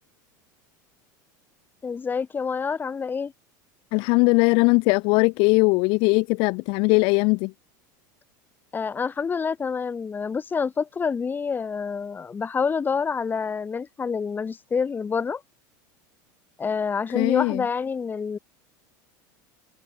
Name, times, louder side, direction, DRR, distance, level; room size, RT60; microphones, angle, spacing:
voice 1, 1.8-3.3 8.7-15.4 16.6-18.4, left 5 dB, 20° left, 0.9 m, -27 dB
voice 2, 3.9-7.5 17.1-17.6, left 30 dB, 55° left, 0.4 m, -20 dB
open air
supercardioid pair, 120°, 10 cm